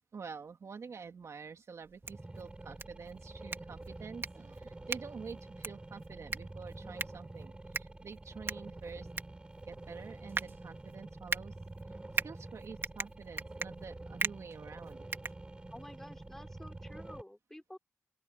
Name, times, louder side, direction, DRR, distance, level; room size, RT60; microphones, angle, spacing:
voice 1, 0.1-9.1 9.7-11.5 12.2-15.1, right 5 dB, 60° right, 2.9 m, -48 dB
sound 1, 1.8-16.0, right 4 dB, 45° right, 2.3 m, -41 dB
sound 2, 2.0-17.2, right 2 dB, 20° right, 5.4 m, -48 dB
voice 2, 15.7-17.8, left 1 dB, 5° left, 3.9 m, -50 dB
open air
wide cardioid pair, 170°, 5 cm